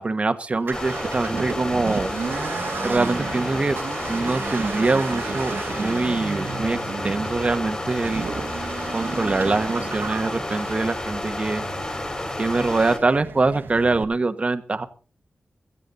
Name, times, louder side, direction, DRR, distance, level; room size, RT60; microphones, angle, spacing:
voice 1, 0.0-2.1 2.8-3.8 4.1-6.8 7.0-8.2 8.9-11.6 12.4-14.8, right 3 dB, 35° right, 9 dB, 1.3 m, -24 dB
Accelerating revving vroom, 0.5-14.0, right 5 dB, 75° right, 1.6 m, -34 dB
sound 1, 0.7-13.0, left 1 dB, 20° left, 5.2 m, -31 dB
16.0 x 15.5 x 4.0 m, 0.37 s
wide cardioid pair, 130°, 4 cm